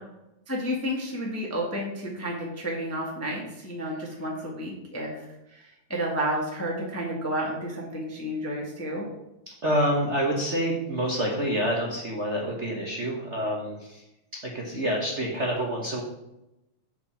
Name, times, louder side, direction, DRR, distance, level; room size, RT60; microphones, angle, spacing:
voice 1, 0.5-9.1, equal, 10° left, -1 dB, 1.0 m, -31 dB
voice 2, 9.6-14.0 14.5-16.0, equal, 60° right, -2 dB, 0.7 m, -27 dB
8.0 x 5.0 x 7.1 m, 0.88 s
omnidirectional pair, 3.3 m